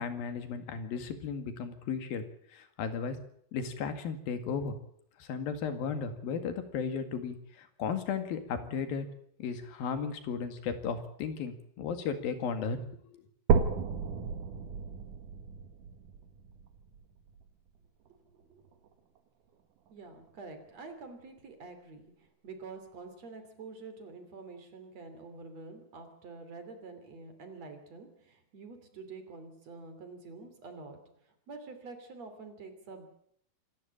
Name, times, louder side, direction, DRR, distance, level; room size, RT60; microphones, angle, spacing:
voice 1, 0.0-2.3 2.5-3.2 3.5-4.8 5.2-9.1 9.4-12.8 13.1-13.2, left 6 dB, 85° left, 9 dB, 3.9 m, -35 dB
sound 1, 13.5-17.5 18.1-18.2 18.7-18.8 19.2-19.3 20.1-20.2, right 6 dB, 65° right, 3.2 m, -32 dB
voice 2, 18.3-18.6 19.9-33.1, right 4 dB, 50° right, 7 dB, 4.1 m, -47 dB
27.0 x 12.0 x 8.7 m, 0.67 s
omnidirectional pair, 4.1 m